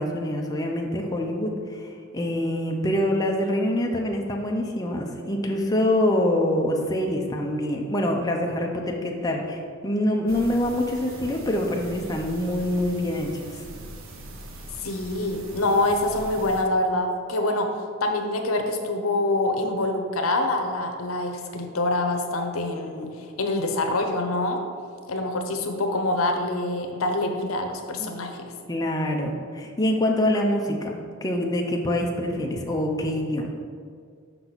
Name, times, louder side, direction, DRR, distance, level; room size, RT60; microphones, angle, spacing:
voice 1, 0.0-13.4 28.0-28.1 28.7-33.5, left 1 dB, 20° left, 0 dB, 0.6 m, -25 dB
sound 1, 10.3-16.6, right 2 dB, 65° right, 0.8 m, -41 dB
voice 2, 14.8-17.7 18.0-24.6 25.1-28.4, left 2 dB, 80° left, 4 dB, 0.7 m, -25 dB
6.1 x 5.7 x 4.0 m, 2.1 s
head